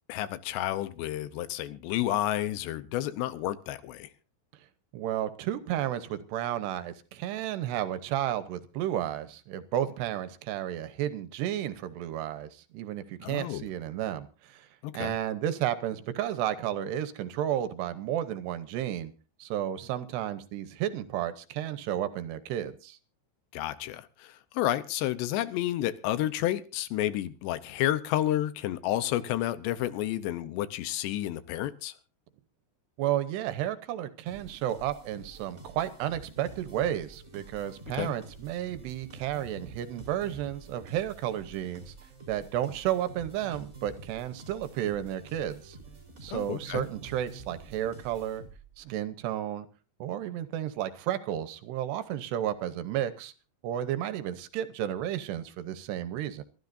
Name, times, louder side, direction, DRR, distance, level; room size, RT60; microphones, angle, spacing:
voice 1, 0.1-4.1 13.2-13.7 14.8-15.2 23.5-31.9 38.0-38.1 46.3-46.8, left 13 dB, 80° left, 3.0 m, -30 dB
voice 2, 4.9-14.7 14.9-19.1 19.4-23.0 33.0-41.9 42.3-45.8 46.2-48.4 48.8-49.7 50.0-53.3 53.6-56.4, right 11 dB, 80° right, 3.0 m, -32 dB
sound 1, 34.3-48.8, right 3 dB, 20° right, 4.4 m, -48 dB
26.5 x 13.0 x 2.6 m
omnidirectional pair, 5.0 m